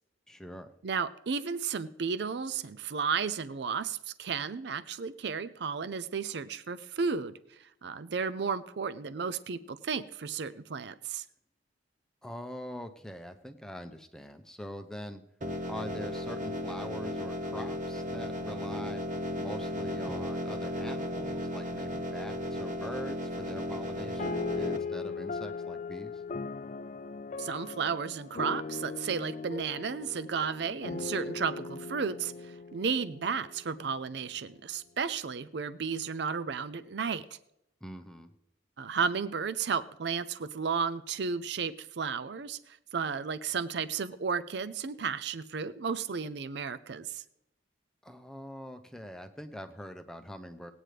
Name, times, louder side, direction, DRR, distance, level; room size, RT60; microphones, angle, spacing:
voice 1, 0.3-0.7 12.2-15.2 15.7-19.0 19.4-26.2 37.8-38.3 48.0-50.7, equal, 5° left, 6 dB, 0.6 m, -43 dB
voice 2, 0.8-11.2 27.4-37.2 38.8-47.2, right 5 dB, 65° right, 14 dB, 0.5 m, -33 dB
sound 1, 15.4-24.8, equal, 40° right, 0.9 m, -35 dB
sound 2, 24.2-33.9, left 4 dB, 40° left, 0.3 m, -39 dB
19.0 x 9.0 x 3.3 m, 0.80 s
head